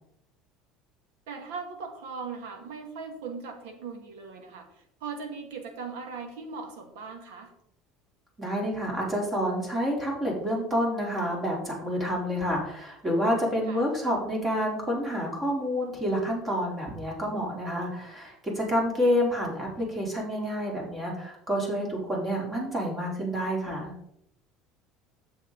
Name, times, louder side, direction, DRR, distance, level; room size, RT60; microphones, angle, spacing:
voice 1, 1.3-7.5 13.7-13.8, right 5 dB, 90° right, 4 dB, 2.0 m, -39 dB
voice 2, 8.4-23.9, equal, 20° right, -1 dB, 3.8 m, -28 dB
9.7 x 7.1 x 4.1 m, 0.74 s
cardioid pair, 125°, 0 cm